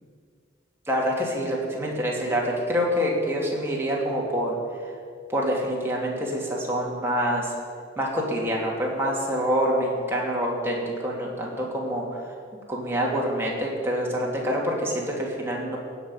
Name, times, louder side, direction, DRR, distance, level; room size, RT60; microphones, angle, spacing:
voice 1, 0.9-4.6 4.8-4.9 5.3-7.5 8.0-12.3 12.7-15.8, equal, 15° right, -3 dB, 2.7 m, -26 dB
16.5 x 6.1 x 9.7 m, 2.1 s
head